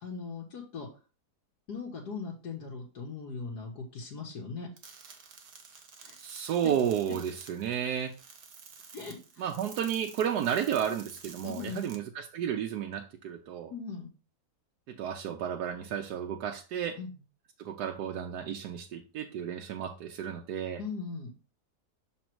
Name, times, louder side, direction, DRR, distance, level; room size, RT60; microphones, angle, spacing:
voice 1, 0.0-0.9 1.7-4.7 6.0-6.2 8.9-9.5 11.4-12.0 13.7-14.1 17.0-17.1 20.8-21.3, left 4 dB, 85° left, -2 dB, 1.8 m, -39 dB
sound 1, 4.8-12.0, right 6 dB, 70° right, 1.5 m, -51 dB
voice 2, 6.2-8.1 9.4-13.7 14.9-17.0 17.6-20.8, right 9 dB, 85° right, 2 dB, 1.2 m, -32 dB
6.1 x 4.0 x 4.4 m, 0.35 s
omnidirectional pair, 1.7 m